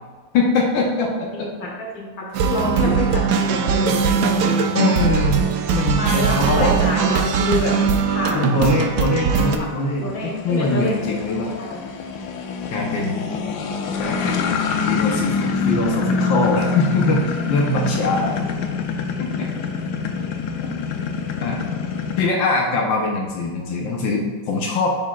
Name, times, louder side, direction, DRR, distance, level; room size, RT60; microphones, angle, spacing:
voice 1, 0.3-1.5 2.6-2.9 4.7-5.4 5.7-6.8 7.9-8.0 8.3-11.5 12.7-13.3 14.0-14.6 14.9-18.4 19.2-19.3 21.4-21.9 22.2-25.0, left 2 dB, 85° left, -1 dB, 1.7 m, -22 dB
voice 2, 1.3-4.7 6.0-7.8 8.1-8.5 9.6-9.7 10.0-11.2 11.6-11.9 12.9-13.4, left 1 dB, 50° left, -2 dB, 1.9 m, -27 dB
sound 1, 2.3-9.6, right 6 dB, 70° right, 1.1 m, -20 dB
sound 2, 6.2-22.3, left 5 dB, 70° left, 1.2 m, -26 dB
11.5 x 4.7 x 2.4 m, 1.4 s
omnidirectional pair, 2.0 m